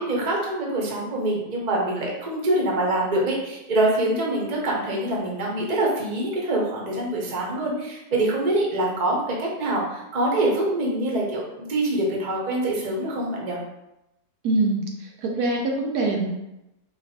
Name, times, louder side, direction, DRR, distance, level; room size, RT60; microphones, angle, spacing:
voice 1, 0.0-13.6, right 1 dB, 35° right, -2 dB, 0.8 m, -25 dB
voice 2, 14.4-14.8 15.2-16.3, right 2 dB, 75° right, 1 dB, 1.2 m, -23 dB
4.4 x 2.6 x 4.2 m, 0.91 s
omnidirectional pair, 1.7 m